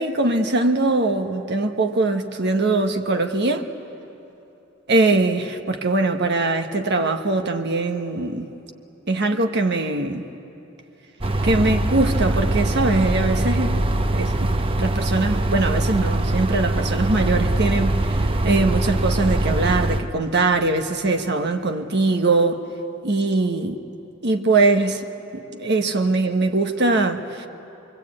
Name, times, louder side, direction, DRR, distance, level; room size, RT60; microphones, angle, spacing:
voice 1, 0.0-3.7 4.9-8.5 9.1-10.3 11.4-13.8 14.1-14.5 14.8-22.6 23.0-23.8 24.2-25.0 25.3-27.5, right 2 dB, 55° right, 6 dB, 1.2 m, -21 dB
sound 1, 11.2-20.0, right 1 dB, 25° right, 0.9 m, -22 dB
26.0 x 23.0 x 8.6 m, 3.0 s
head